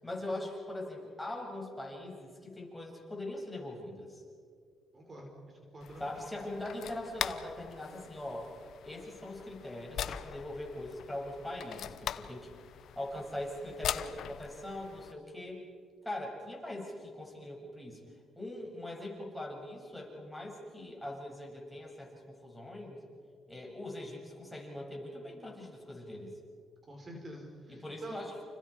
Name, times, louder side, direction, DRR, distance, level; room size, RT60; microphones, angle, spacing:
voice 1, 0.0-4.2 6.0-8.5 8.8-12.5 12.9-15.6 16.0-18.0 18.4-23.0 23.5-26.3 27.7-28.4, left 1 dB, 5° left, -2 dB, 7.9 m, -41 dB
voice 2, 4.9-6.1 26.9-28.1, right 1 dB, 35° right, 1 dB, 5.0 m, -47 dB
sound 1, 5.8-15.1, left 9 dB, 70° left, 0.9 m, -42 dB
29.5 x 29.5 x 5.2 m, 2.2 s
cardioid pair, 90°, 0 cm